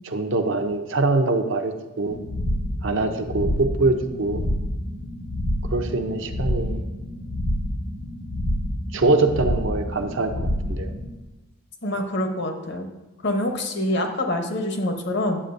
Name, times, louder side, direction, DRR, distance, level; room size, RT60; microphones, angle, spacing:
voice 1, 0.0-2.2 2.8-4.5 5.7-6.8 8.9-10.9, right 3 dB, 60° right, 5 dB, 0.7 m, -23 dB
sound 1, 2.1-11.1, left 1 dB, 80° left, 1.2 m, -28 dB
voice 2, 11.8-12.9 13.2-15.4, left 1 dB, 50° left, 5 dB, 0.9 m, -25 dB
9.9 x 7.2 x 2.6 m, 1.1 s
head